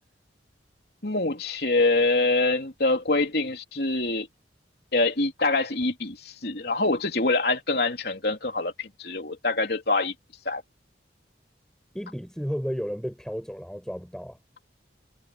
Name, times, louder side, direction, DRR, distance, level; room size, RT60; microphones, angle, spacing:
voice 1, 1.0-4.3 4.9-10.1 10.5-10.6, left 2 dB, 60° left, 3.4 m, -25 dB
voice 2, 11.9-14.4, equal, 5° left, 7.6 m, -33 dB
head